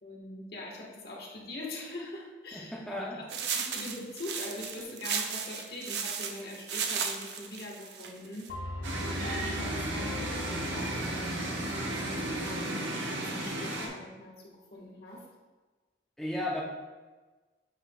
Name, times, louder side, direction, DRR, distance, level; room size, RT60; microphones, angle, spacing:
voice 1, 0.0-8.5 8.9-12.6 13.1-15.2, left 1 dB, 55° left, -2 dB, 1.4 m, -43 dB
voice 2, 2.5-3.5 16.2-16.6, left 1 dB, ahead, -4 dB, 0.5 m, -35 dB
sound 1, 3.3-8.5, right 6 dB, 60° right, 0.6 m, -35 dB
sound 2, 8.5-12.7, left 1 dB, 80° left, 0.9 m, -40 dB
sound 3, 8.8-13.9, right 1 dB, 90° right, 1.2 m, -34 dB
8.1 x 5.8 x 2.3 m, 1.3 s
head